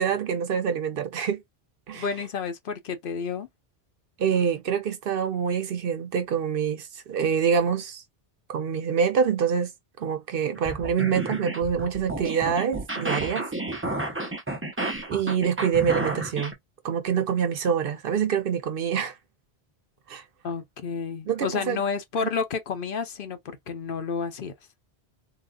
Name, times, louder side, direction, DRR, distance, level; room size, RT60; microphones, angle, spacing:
voice 1, 0.0-1.4 1.9-2.0 4.2-8.0 8.5-9.7 10.0-13.5 15.1-16.5 16.8-19.1 20.1-20.2 21.3-21.8 22.2-22.3, right 7 dB, 65° right, 0.8 m, -25 dB
voice 2, 1.9-3.5 20.4-24.5, left 5 dB, 60° left, 0.8 m, -30 dB
sound 1, 10.5-16.5, right 2 dB, 15° right, 0.6 m, -31 dB
3.8 x 2.3 x 2.3 m
omnidirectional pair, 1.1 m